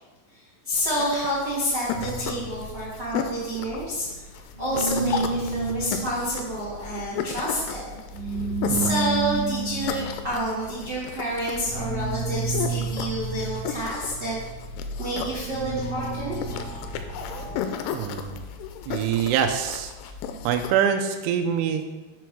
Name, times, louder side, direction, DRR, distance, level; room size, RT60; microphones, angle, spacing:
voice 1, 0.6-4.1 4.6-8.0 8.7-14.4 15.0-16.4, equal, 65° right, -9 dB, 1.0 m, -28 dB
sound 1, 0.7-20.7, left 7 dB, 85° left, 3.0 m, -35 dB
sound 2, 1.9-4.3 4.5-17.6, right 3 dB, 45° left, 2.9 m, -32 dB
voice 2, 8.6-8.9 17.9-18.4 18.9-19.9 20.4-21.8, right 8 dB, 85° right, 5 dB, 3.0 m, -25 dB
7.0 x 4.6 x 6.0 m, 1.1 s
omnidirectional pair, 5.5 m